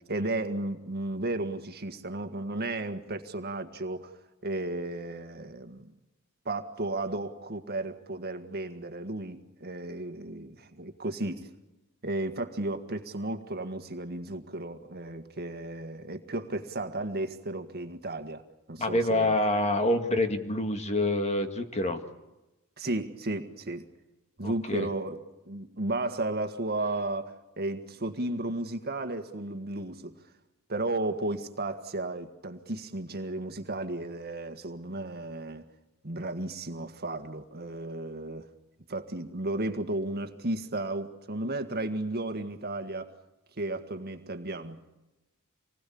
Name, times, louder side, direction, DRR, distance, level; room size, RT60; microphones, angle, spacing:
voice 1, 0.1-4.1 4.4-5.9 6.4-11.5 12.0-18.4 18.7-19.4 22.8-23.9 24.4-30.2 30.7-35.6 36.0-38.5 38.9-43.1 43.6-44.8, right 2 dB, 50° right, 1.7 m, -34 dB
voice 2, 18.8-22.0 24.4-24.9, left 1 dB, 30° left, 2.0 m, -27 dB
27.0 x 20.5 x 8.6 m
head